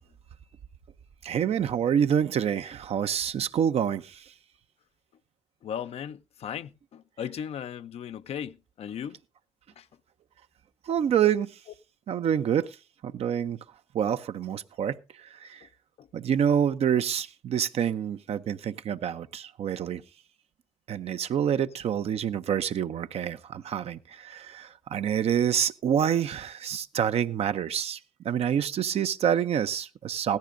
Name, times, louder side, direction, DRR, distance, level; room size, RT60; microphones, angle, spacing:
voice 1, 1.2-4.3 10.9-11.5 12.1-12.8 13.0-13.6 13.9-15.7 16.1-20.0 20.9-28.0 28.2-30.4, right 9 dB, 65° right, 0.6 m, -27 dB
voice 2, 5.6-9.2 9.8-9.9 16.0-16.1 21.5-21.7, left 8 dB, 65° left, 0.5 m, -37 dB
16.5 x 13.5 x 2.6 m
hypercardioid pair, 40°, 11 cm